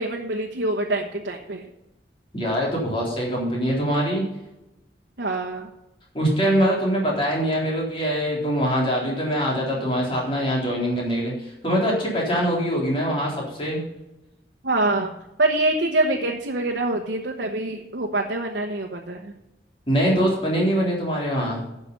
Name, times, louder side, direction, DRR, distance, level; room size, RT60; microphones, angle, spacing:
voice 1, 0.0-1.7 5.2-5.7 14.6-15.1 15.4-19.3, right 2 dB, 80° right, 1 dB, 1.1 m, -25 dB
voice 2, 2.3-4.2 6.1-11.3 11.6-13.8 19.9-21.6, equal, 30° left, -3 dB, 3.7 m, -23 dB
11.5 x 7.0 x 5.3 m, 0.94 s
head